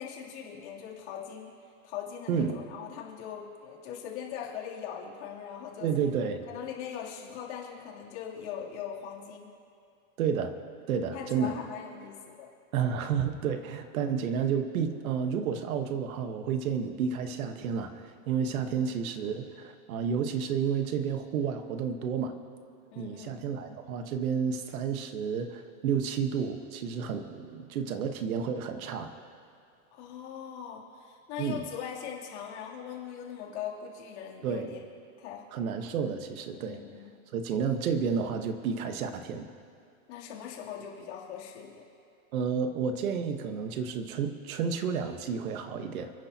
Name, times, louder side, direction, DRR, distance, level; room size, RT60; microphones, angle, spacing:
voice 1, 0.0-1.6 1.8-5.9 6.5-9.5 11.1-12.5 18.6-18.9 22.9-23.4 29.9-34.8 35.2-35.4 36.5-37.1 40.1-41.8, left 8 dB, 50° left, -3 dB, 3.0 m, -41 dB
voice 2, 2.3-2.6 5.8-6.4 10.2-10.5 10.9-11.6 12.7-22.4 22.9-29.1 31.4-31.6 34.4-34.7 35.5-36.8 37.3-39.5 42.3-46.1, right 6 dB, 75° right, 7 dB, 1.3 m, -31 dB
30.0 x 10.5 x 2.8 m, 2.4 s
supercardioid pair, 175°, 43 cm